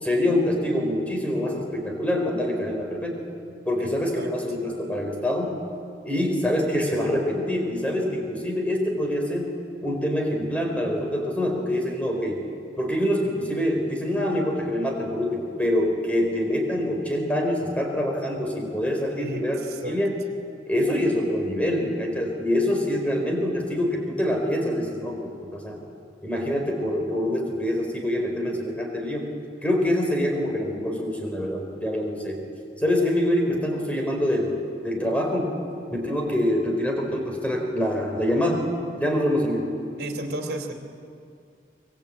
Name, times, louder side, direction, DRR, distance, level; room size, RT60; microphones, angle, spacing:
voice 1, 0.0-3.2 3.6-5.6 6.0-9.5 9.8-12.4 12.8-20.2 20.7-25.8 26.2-29.3 29.6-32.4 32.8-34.6 34.8-35.5 35.9-38.7 39.0-39.8, left 1 dB, 10° left, 1 dB, 4.0 m, -25 dB
voice 2, 19.2-20.0 40.0-40.7, right 1 dB, 65° right, 4 dB, 3.0 m, -33 dB
24.5 x 21.0 x 8.6 m, 2.5 s
head